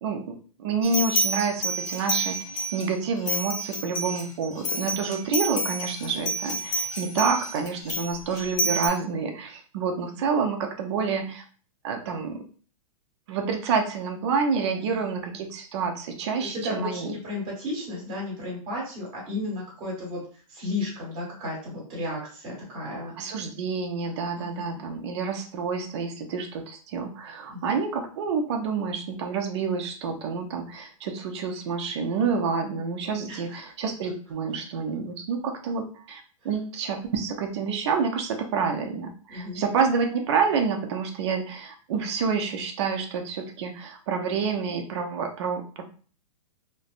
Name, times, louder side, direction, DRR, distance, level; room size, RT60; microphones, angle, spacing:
voice 1, 0.0-11.4 11.8-12.4 13.3-17.1 23.2-45.8, right 5 dB, 50° right, 4 dB, 0.6 m, -28 dB
Christmas Angel Chimes, 0.8-2.9 3.3-8.9, equal, 55° left, 0.7 m, -29 dB
voice 2, 16.4-20.2 20.5-23.1 24.4-24.8 27.5-27.7 33.2-33.4 39.3-39.6, left 2 dB, 30° right, -4 dB, 1.5 m, -34 dB
3.2 x 2.0 x 2.4 m, 0.40 s
hypercardioid pair, 160°, 19 cm